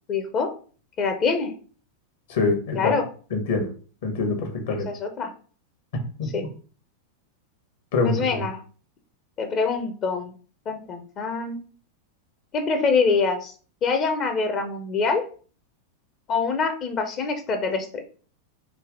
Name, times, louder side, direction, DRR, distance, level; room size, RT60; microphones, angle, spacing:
voice 1, 0.1-0.5 1.0-1.5 2.7-3.1 4.7-5.3 6.3-6.4 8.0-8.6 9.4-10.3 10.7-11.6 12.5-13.5 13.8-15.2 16.3-18.0, left 4 dB, 30° left, 6 dB, 0.7 m, -25 dB
voice 2, 2.3-2.9 3.3-3.7 4.0-4.9 6.2-6.5 7.9-8.2, left 3 dB, 55° left, 5 dB, 1.2 m, -24 dB
4.7 x 2.8 x 3.7 m, 0.41 s
figure-of-eight pair, 90°, 0 cm